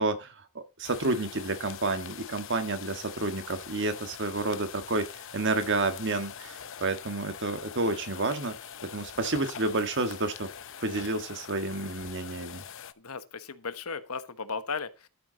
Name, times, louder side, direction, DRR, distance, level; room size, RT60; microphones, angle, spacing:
voice 1, 0.0-5.1 5.3-8.6 8.9-10.5 10.8-12.6, right 2 dB, 55° right, 1.7 m, -30 dB
sound 1, 0.8-12.9, left 8 dB, 60° left, 0.8 m, -43 dB
voice 2, 13.0-15.1, left 5 dB, 90° left, 1.2 m, -36 dB
12.5 x 8.0 x 4.0 m
head